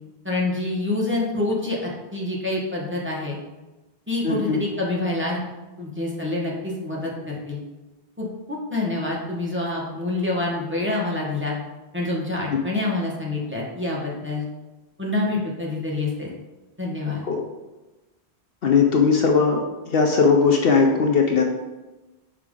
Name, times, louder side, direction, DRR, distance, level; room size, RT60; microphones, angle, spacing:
voice 1, 0.2-3.4 4.1-5.4 5.8-7.6 8.2-11.6 11.9-14.5 15.0-16.3 16.8-17.2, left 2 dB, 10° right, -4 dB, 1.2 m, -27 dB
voice 2, 4.2-4.6 12.5-12.6 17.3-17.4 18.6-21.4, left 5 dB, 60° left, 2 dB, 0.9 m, -19 dB
5.9 x 4.9 x 3.7 m, 1.1 s
omnidirectional pair, 1.1 m